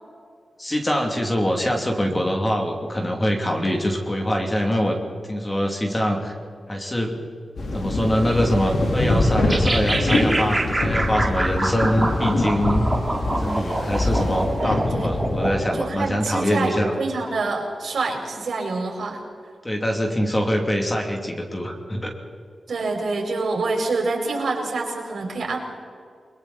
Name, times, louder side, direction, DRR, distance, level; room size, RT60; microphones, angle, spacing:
voice 1, 0.6-5.0 5.3-6.3 6.7-7.2 7.7-12.9 13.4-16.9 19.6-22.1, equal, 20° left, 2 dB, 2.7 m, -24 dB
sound 1, 7.6-16.3, left 1 dB, 75° left, 3.6 m, -24 dB
sound 2, 9.5-15.8, right 2 dB, 15° right, 2.8 m, -26 dB
voice 2, 14.6-15.1 15.7-19.2 22.7-25.6, right 3 dB, 80° right, 0 dB, 5.1 m, -26 dB
30.0 x 22.0 x 4.2 m, 2.3 s
wide cardioid pair, 145°, 0 cm